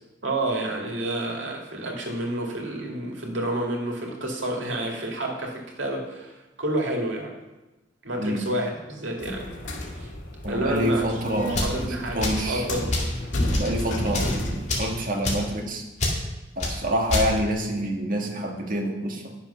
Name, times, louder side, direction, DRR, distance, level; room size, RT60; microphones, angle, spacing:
voice 1, 0.2-7.4 8.0-9.5 10.0-10.1 10.5-11.2 11.4-12.9, right 1 dB, 85° right, 0 dB, 2.2 m, -29 dB
voice 2, 8.2-8.5 10.4-11.9 12.1-12.7 13.6-15.8 16.6-19.4, equal, 50° right, 1 dB, 1.7 m, -27 dB
sound 1, 9.2-15.0, left 1 dB, 80° left, 2.0 m, -31 dB
sound 2, 11.5-11.8 12.2-12.5 12.9-13.1 13.5-13.7 14.1-14.3 14.7-14.9 15.2-15.5 16.0-16.2 16.6-16.7 17.1-17.3, left 2 dB, 40° left, 2.2 m, -26 dB
10.5 x 7.0 x 5.7 m, 1.1 s
head